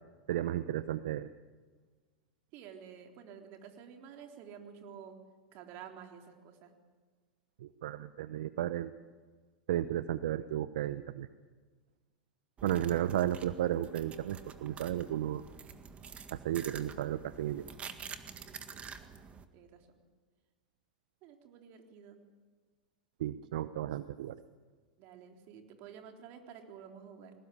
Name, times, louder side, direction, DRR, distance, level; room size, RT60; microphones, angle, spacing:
voice 1, 0.3-1.3 7.6-8.9 9.7-11.3 12.6-15.4 16.3-17.6 23.2-24.3, right 12 dB, 70° right, 14 dB, 0.8 m, -33 dB
voice 2, 2.5-5.2 5.5-6.7 18.3-19.1 19.5-20.0 21.2-22.2 25.0-27.3, right 8 dB, 50° right, 4 dB, 3.7 m, -51 dB
sound 1, 12.6-19.5, right 6 dB, 30° right, 1.8 m, -48 dB
21.5 x 18.5 x 8.6 m, 1.4 s
hypercardioid pair, 100°, 4 cm